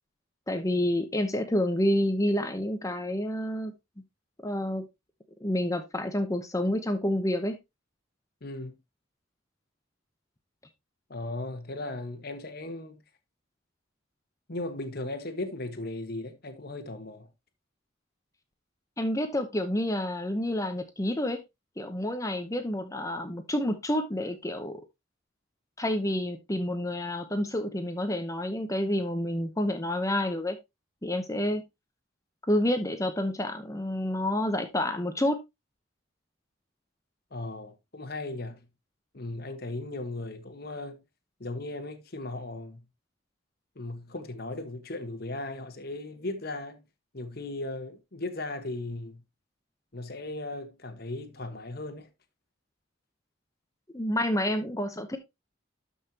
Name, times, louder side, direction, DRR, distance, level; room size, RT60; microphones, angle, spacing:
voice 1, 0.5-3.7 4.4-4.8 5.4-7.6 19.0-21.4 21.8-24.8 25.8-30.6 31.0-31.6 32.5-35.4 53.9-55.2, left 1 dB, 15° left, 0.8 m, -29 dB
voice 2, 8.4-8.8 11.1-13.0 14.5-17.3 37.3-38.7 39.1-41.0 41.4-42.8 43.7-46.8 47.1-49.2 49.9-52.1, left 2 dB, 50° left, 1.4 m, -37 dB
12.5 x 5.6 x 2.9 m
head